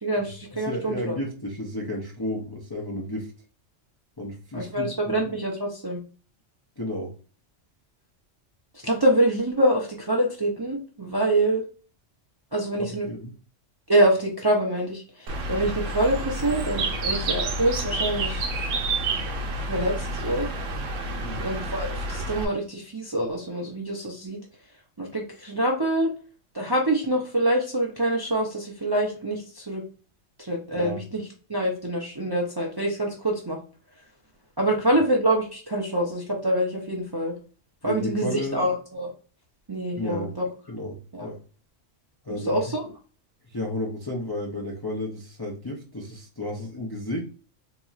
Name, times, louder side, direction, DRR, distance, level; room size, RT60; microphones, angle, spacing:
voice 1, 0.0-1.2 4.5-6.0 8.8-11.6 12.5-13.1 13.9-18.5 19.7-20.5 21.4-24.4 25.0-26.1 26.5-29.8 30.4-31.2 31.5-33.6 34.6-37.3 37.8-39.1 39.7-40.5 41.1-41.3 42.4-42.8, right 1 dB, 25° right, -1 dB, 0.5 m, -25 dB
voice 2, 0.7-3.3 4.2-5.1 6.8-7.1 12.8-13.3 21.2-21.4 30.8-31.0 37.8-38.7 40.0-40.3 40.7-41.4 42.2-42.7 43.5-47.2, left 1 dB, 25° left, -2 dB, 0.5 m, -32 dB
Bird, 15.3-22.5, right 2 dB, 90° right, 1.0 m, -29 dB
4.1 x 2.9 x 2.4 m, 0.37 s
omnidirectional pair, 1.3 m